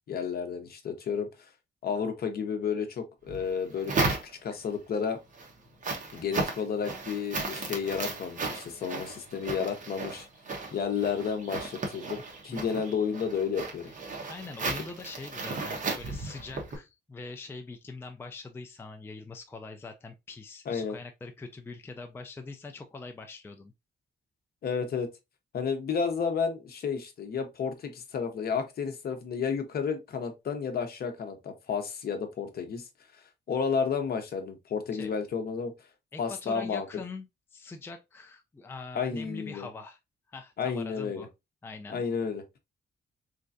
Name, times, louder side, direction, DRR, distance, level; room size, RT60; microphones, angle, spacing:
voice 1, 0.1-1.5 1.8-5.2 6.1-10.3 10.7-13.9 20.7-20.9 24.6-25.1 25.5-32.9 33.1-35.7 36.2-36.9 38.9-39.7 40.6-41.3 41.9-42.4, left 6 dB, 60° left, 0.8 m, -32 dB
sound 1, 3.3-4.7 5.2-16.8, right 3 dB, 45° right, 1.1 m, -35 dB
voice 2, 12.5-12.8 14.3-23.7 34.9-35.1 36.1-37.3 37.5-40.0 40.3-41.3 41.6-42.0, left 3 dB, 15° left, 0.4 m, -43 dB
3.7 x 3.3 x 2.6 m
wide cardioid pair, 145°, 18 cm